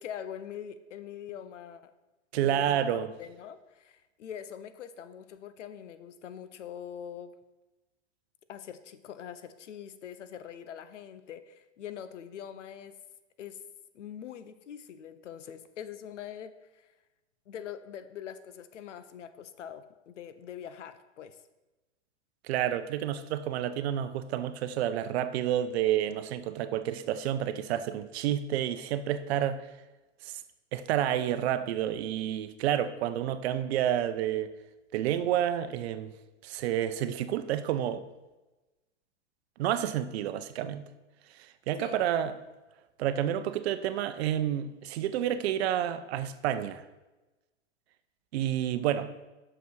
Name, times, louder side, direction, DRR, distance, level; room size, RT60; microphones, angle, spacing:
voice 1, 0.0-1.9 2.3-2.9 3.2-7.3 8.5-13.0 13.4-13.6 13.9-16.9 17.5-21.4 41.8-42.0, left 9 dB, 80° left, 0.7 m, -43 dB
voice 2, 2.3-3.1 22.5-29.6 30.2-30.3 30.7-34.5 34.9-36.1 36.4-38.0 39.6-40.8 41.7-42.4 43.0-46.8 48.3-49.1, right 11 dB, 60° right, 0.7 m, -29 dB
6.1 x 5.6 x 6.0 m
hypercardioid pair, 115°, 36 cm